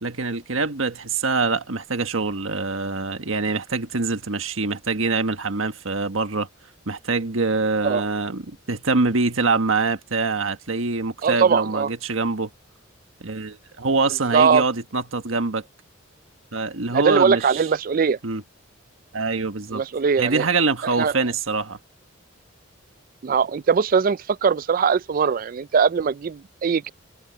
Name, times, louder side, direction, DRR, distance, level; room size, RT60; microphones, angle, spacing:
voice 1, 0.0-6.5 6.9-12.5 13.2-15.6 16.5-17.7 18.2-18.4 19.1-19.8 20.2-21.8, right 3 dB, 75° right, 1.5 m, -24 dB
voice 2, 11.2-11.9 14.3-14.6 16.9-18.2 19.7-20.5 21.0-21.1 23.2-26.9, right 6 dB, 40° right, 0.3 m, -20 dB
open air
head